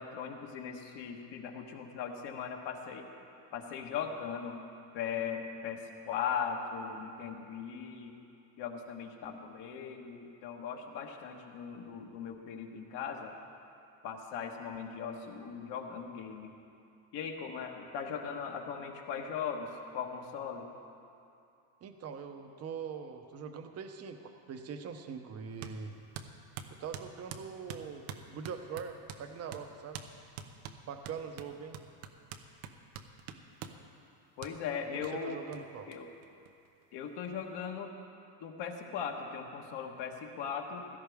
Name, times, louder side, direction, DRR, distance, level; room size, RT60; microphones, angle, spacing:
voice 1, 0.0-3.1 3.5-4.6 4.9-8.1 8.6-13.3 14.0-16.5 17.1-20.7 34.4-35.4 35.9-36.1 36.9-37.9 38.4-41.0, left 7 dB, 55° left, 2 dB, 1.5 m, -39 dB
voice 2, 21.8-25.9 26.7-30.0 30.9-31.8 34.9-35.9, right 6 dB, 30° right, 7 dB, 0.8 m, -42 dB
sound 1, 25.6-25.8 26.1-29.2 29.5-29.7 29.9-30.1 30.4-33.8 34.4-34.5 35.0-35.1 35.5-35.6 35.9-36.0 36.2-37.0, right 8 dB, 75° right, 1.0 m, -45 dB
16.5 x 13.0 x 3.5 m, 2.6 s
supercardioid pair, 120°, 50 cm